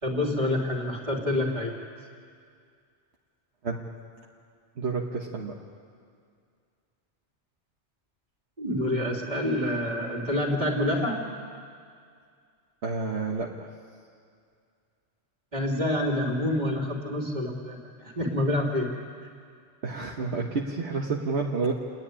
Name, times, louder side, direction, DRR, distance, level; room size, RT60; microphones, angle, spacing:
voice 1, 0.0-1.7 8.6-11.2 15.5-18.9, left 1 dB, 40° right, -2 dB, 3.2 m, -27 dB
voice 2, 4.8-5.6 12.8-13.7 19.8-21.7, right 4 dB, 70° right, -1 dB, 1.5 m, -30 dB
29.0 x 10.5 x 10.0 m, 2.2 s
omnidirectional pair, 1.2 m